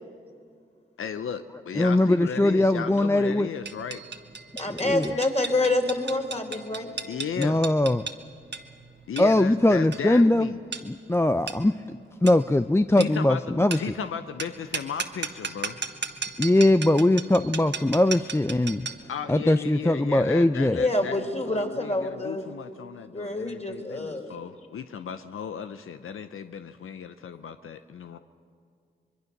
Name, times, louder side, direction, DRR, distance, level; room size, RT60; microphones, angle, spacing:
voice 1, 1.0-4.0 5.1-5.2 5.6-5.7 7.0-7.6 9.0-10.5 13.0-15.8 19.1-28.2, left 7 dB, 80° left, 9 dB, 0.7 m, -35 dB
voice 2, 1.8-3.5 4.7-5.1 7.4-8.1 9.2-10.5 10.8-11.8 12.2-13.8 16.4-18.9 19.3-20.8, left 1 dB, 10° left, 11 dB, 0.5 m, -21 dB
sound 1, 3.7-19.1, right 5 dB, 55° right, 1.5 m, -37 dB
voice 3, 4.6-6.9 20.7-22.4 23.1-24.4, left 2 dB, 30° left, 3 dB, 3.7 m, -27 dB
24.5 x 21.5 x 6.6 m, 2.2 s
cardioid pair, 40°, 21 cm